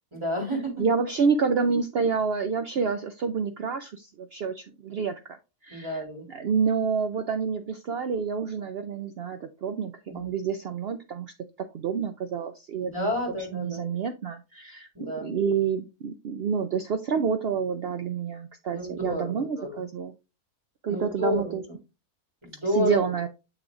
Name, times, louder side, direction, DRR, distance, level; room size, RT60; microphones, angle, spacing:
voice 1, 0.1-0.8 5.7-6.2 10.1-10.3 12.8-13.8 14.9-15.3 18.7-19.8 20.9-21.6 22.4-23.1, left 1 dB, 15° right, -1 dB, 3.2 m, -30 dB
voice 2, 0.8-5.4 5.6-11.3 11.7-13.1 13.5-14.9 15.2-20.1 20.8-21.6 22.7-23.3, right 6 dB, 85° right, 8 dB, 0.5 m, -28 dB
7.0 x 6.5 x 2.4 m, 0.27 s
omnidirectional pair, 1.7 m